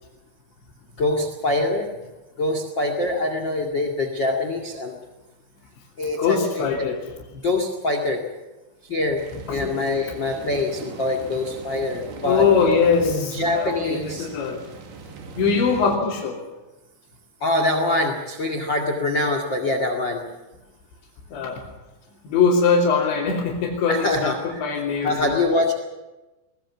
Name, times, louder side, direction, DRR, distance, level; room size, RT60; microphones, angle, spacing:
voice 1, 1.0-1.9 2.4-5.0 6.0-6.9 7.3-8.2 8.9-9.2 9.5-12.5 13.0-14.3 17.4-20.2 23.9-25.7, left 2 dB, 40° left, 5 dB, 1.8 m, -24 dB
voice 2, 6.2-7.0 9.5-9.7 12.2-14.6 15.4-16.4 21.3-21.6 22.2-25.4, left 5 dB, 75° left, -5 dB, 4.9 m, -22 dB
sound 1, 9.2-16.0, right 4 dB, 70° right, 4.8 m, -39 dB
23.0 x 18.5 x 7.2 m, 1.1 s
omnidirectional pair, 5.3 m